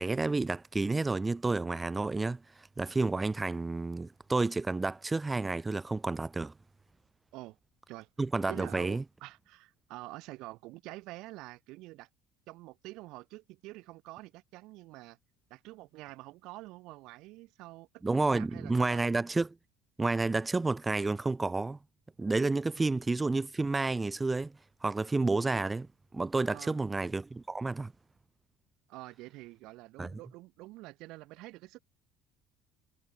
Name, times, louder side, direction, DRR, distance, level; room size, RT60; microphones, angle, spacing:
voice 1, 0.0-6.5 8.2-9.0 18.0-19.5 20.0-21.8 22.2-24.5 24.8-25.9 26.1-27.9 30.0-30.2, right 3 dB, 15° right, 0.4 m, -30 dB
voice 2, 8.5-12.1 12.5-15.2 15.5-17.9 18.3-19.0 26.5-26.8 28.9-31.8, right 20 dB, 70° right, 2.4 m, -47 dB
supercardioid pair, 85°, 0 cm